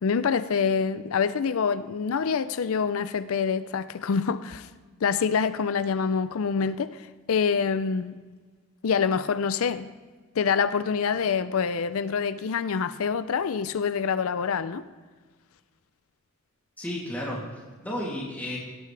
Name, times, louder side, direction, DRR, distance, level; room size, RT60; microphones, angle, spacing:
voice 1, 0.0-4.7 5.0-7.0 7.3-8.1 8.8-9.9 10.4-14.9, left 6 dB, 70° left, 0.5 m, -26 dB
voice 2, 16.8-18.6, left 1 dB, 10° left, 2.7 m, -33 dB
17.0 x 8.4 x 3.3 m
head